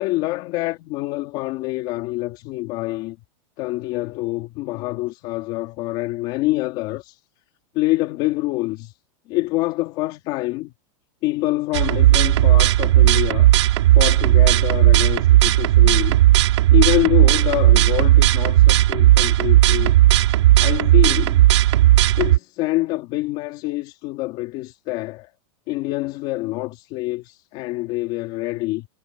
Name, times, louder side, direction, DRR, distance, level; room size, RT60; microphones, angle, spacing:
voice 1, 0.0-3.2 3.6-7.2 7.7-9.0 9.3-10.7 11.2-13.5 13.9-16.2 16.7-19.9 20.6-21.5 22.2-25.3 25.7-28.9, left 19 dB, 30° left, 3.2 m, -26 dB
sound 1, 11.7-22.4, right 15 dB, 60° right, 3.7 m, -15 dB
supercardioid pair, 175°, 16 cm